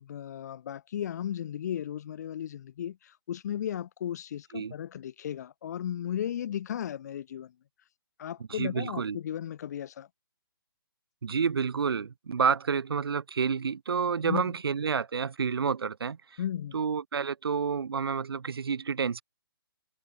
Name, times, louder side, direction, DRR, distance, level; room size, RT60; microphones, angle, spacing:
voice 1, 0.0-7.5 8.2-10.1 14.2-14.5 16.4-16.8, left 10 dB, 45° left, 1.0 m, -35 dB
voice 2, 8.5-9.2 11.2-16.4 16.7-19.2, right 6 dB, 80° right, 0.5 m, -29 dB
hypercardioid pair, 145°, 12 cm